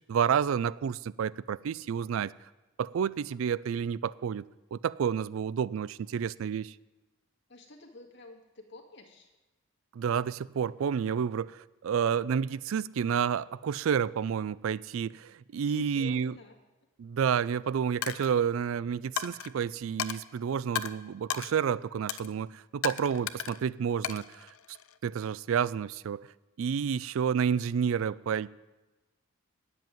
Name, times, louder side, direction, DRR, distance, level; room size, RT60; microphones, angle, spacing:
voice 1, 0.1-2.3 2.8-4.5 4.7-6.7 9.9-16.3 17.0-24.5 25.0-26.3 26.6-28.5, right 7 dB, 75° right, 20 dB, 0.3 m, -30 dB
voice 2, 7.5-9.3 15.6-16.6 28.0-28.2, left 2 dB, 55° left, 1 dB, 1.9 m, -49 dB
Coin (dropping), 18.0-18.3 19.2-19.5 20.0-20.2 20.8-20.9 21.3-21.5 22.1-22.3 22.8-23.6 24.0-25.0, left 9 dB, 90° left, 0.5 m, -34 dB
9.5 x 7.6 x 9.1 m, 1.1 s
head